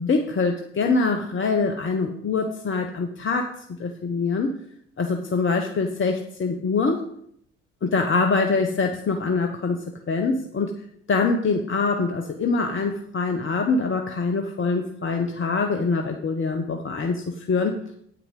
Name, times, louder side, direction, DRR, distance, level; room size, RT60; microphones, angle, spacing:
voice 1, 0.0-3.5 3.8-4.5 5.0-7.0 7.8-10.7 11.1-17.8, left 4 dB, 35° left, 4 dB, 1.3 m, -24 dB
9.0 x 8.8 x 5.5 m, 0.69 s
figure-of-eight pair, 50°, 33 cm